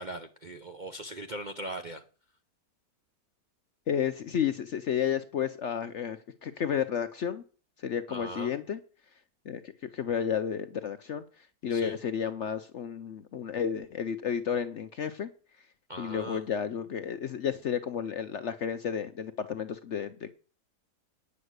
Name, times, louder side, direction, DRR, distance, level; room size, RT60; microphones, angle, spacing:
voice 1, 0.0-2.0 8.1-8.5 11.7-12.0 15.9-16.4, right 1 dB, 45° right, 7 dB, 0.6 m, -39 dB
voice 2, 3.9-7.4 7.8-8.8 9.5-15.3 16.0-20.3, left 8 dB, 60° left, 10 dB, 0.8 m, -32 dB
9.6 x 6.2 x 8.0 m, 0.39 s
omnidirectional pair, 1.8 m